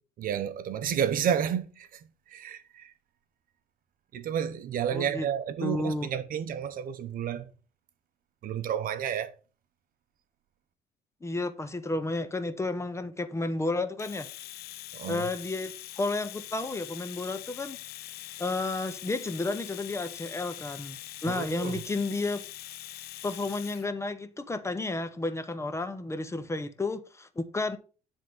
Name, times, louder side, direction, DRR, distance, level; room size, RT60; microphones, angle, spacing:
voice 1, 0.2-2.9 4.1-7.5 8.4-9.3 14.9-15.3 21.3-21.8, right 8 dB, 55° right, 0.8 m, -31 dB
voice 2, 4.9-5.3 5.6-6.1 11.2-14.3 15.1-17.8 18.4-22.4 23.2-27.8, left 2 dB, 15° left, 0.8 m, -32 dB
Domestic sounds home sounds, 14.0-23.9, left 15 dB, 70° left, 0.5 m, -43 dB
10.0 x 3.6 x 5.3 m
cardioid pair, 110°, 17 cm